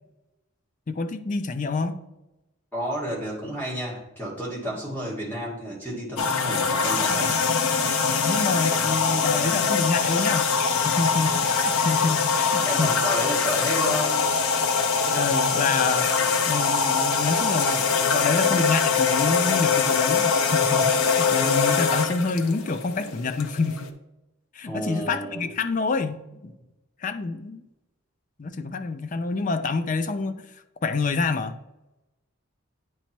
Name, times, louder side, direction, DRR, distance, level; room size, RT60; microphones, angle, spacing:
voice 1, 0.9-2.0 8.0-10.5 10.8-13.0 15.0-23.9 24.5-26.5 27.0-27.6 28.4-30.4 30.8-31.6, left 4 dB, 35° left, 9 dB, 0.4 m, -27 dB
voice 2, 2.7-7.4 12.7-14.2 24.7-25.4, equal, 10° left, -5 dB, 1.9 m, -31 dB
sound 1, 6.2-23.9, left 5 dB, 85° left, 0.7 m, -23 dB
8.9 x 3.0 x 4.4 m, 0.94 s
head